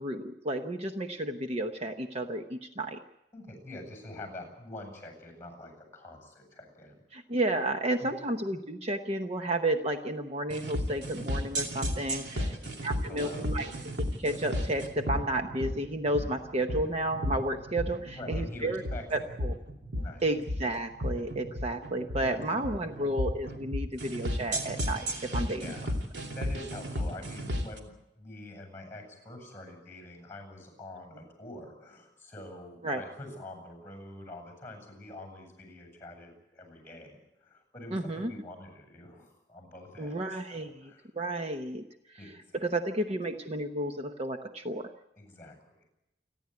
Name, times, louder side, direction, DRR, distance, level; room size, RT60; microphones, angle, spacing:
voice 1, 0.0-3.0 7.1-12.4 12.8-13.7 14.2-18.8 19.1-19.5 20.2-25.7 32.8-33.0 37.9-38.3 40.0-41.8 42.1-44.9, right 1 dB, 35° right, 6 dB, 1.0 m, -32 dB
voice 2, 3.3-7.0 8.0-8.1 12.3-13.5 18.1-19.3 20.0-20.2 22.1-23.1 25.6-26.0 26.3-41.1 42.2-42.6 45.2-45.8, left 1 dB, 15° left, 4 dB, 7.8 m, -46 dB
sound 1, 10.5-27.8, equal, 70° right, 2.8 m, -34 dB
29.0 x 11.0 x 9.5 m, 0.88 s
head